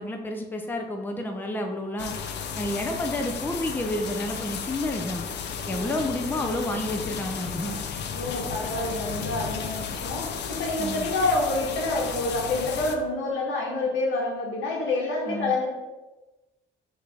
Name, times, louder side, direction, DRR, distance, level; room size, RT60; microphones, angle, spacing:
voice 1, 0.0-2.1 2.6-5.2 5.7-7.8 10.8-11.1 15.3-15.5, left 1 dB, 10° left, 3 dB, 0.5 m, -30 dB
sound 1, 2.0-13.0, left 6 dB, 60° left, 0.5 m, -34 dB
voice 2, 5.7-6.0 8.1-15.7, left 2 dB, 80° left, -1 dB, 1.1 m, -28 dB
4.8 x 2.7 x 3.4 m, 1.1 s
cardioid pair, 90°, 20 cm